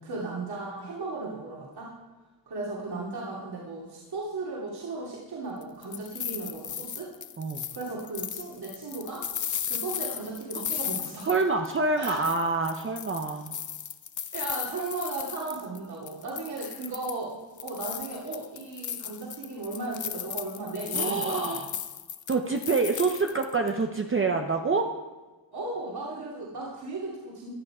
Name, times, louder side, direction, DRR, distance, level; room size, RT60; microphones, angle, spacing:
voice 1, 0.0-1.9 2.5-7.1 7.7-9.2 9.7-11.3 11.9-12.2 14.3-21.6 25.5-27.5, right 3 dB, 55° right, -5 dB, 2.8 m, -36 dB
sound 1, 5.6-11.8 12.0-15.8 16.1-17.2 17.6-23.7, left 8 dB, 40° left, 0.6 m, -36 dB
voice 2, 11.3-13.6 20.9-21.7 22.3-24.9, right 3 dB, 30° right, 4 dB, 0.7 m, -26 dB
15.5 x 11.0 x 4.9 m, 1.2 s
wide cardioid pair, 165°, 45 cm